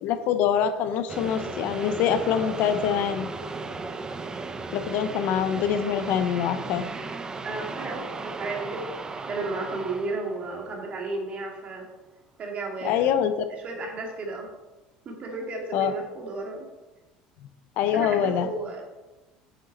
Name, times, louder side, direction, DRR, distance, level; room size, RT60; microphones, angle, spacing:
voice 1, 0.0-3.3 4.7-6.9 12.8-13.3 15.7-15.9 17.8-18.5, left 8 dB, 65° left, 10 dB, 0.8 m, -24 dB
sound 1, 1.1-11.3, right 3 dB, 25° right, 0.8 m, -36 dB
voice 2, 7.4-8.9 9.2-11.8 12.4-13.2 13.6-14.5 15.0-16.7 17.9-18.8, right 3 dB, 45° right, 0 dB, 2.6 m, -33 dB
8.3 x 6.8 x 4.3 m, 1.1 s
supercardioid pair, 90°, 3 cm